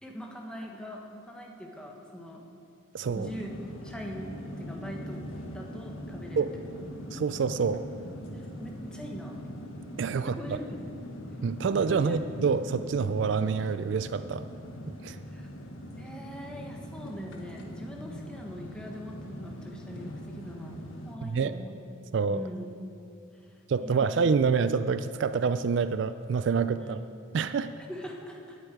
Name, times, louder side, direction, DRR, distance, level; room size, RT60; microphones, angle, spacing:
voice 1, 0.0-2.5 3.1-3.5 3.8-5.2 5.5-6.5 6.7-6.9 8.3-9.5 10.3-10.8 11.9-12.2 15.3-15.5 16.0-21.8 22.3-22.7 23.3-24.5 26.8-27.0 27.9-28.6, equal, 5° left, 0 dB, 1.3 m, -42 dB
voice 2, 2.9-3.3 6.4-6.5 7.1-7.8 10.0-10.6 11.4-14.4 14.9-15.2 21.2-21.5 22.1-22.4 23.7-27.0 27.3-27.7, right 5 dB, 60° right, 13 dB, 0.3 m, -27 dB
sound 1, 3.0-21.1, equal, 80° left, 1.4 m, -41 dB
9.9 x 8.2 x 9.1 m, 2.6 s
head